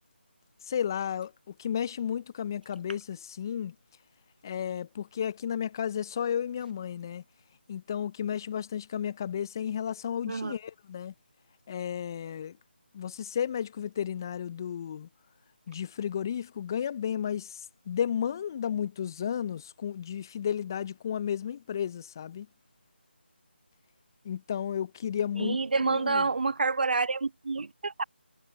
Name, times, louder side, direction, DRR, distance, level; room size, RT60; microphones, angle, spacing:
voice 1, 0.7-3.7 4.4-7.2 7.7-11.1 11.7-12.6 12.9-15.1 15.7-17.6 17.9-22.5 24.2-26.2, left 8 dB, 20° left, 0.5 m, -33 dB
voice 2, 25.4-28.0, right 4 dB, 50° right, 1.2 m, -28 dB
figure-of-eight pair, 160°, 6 cm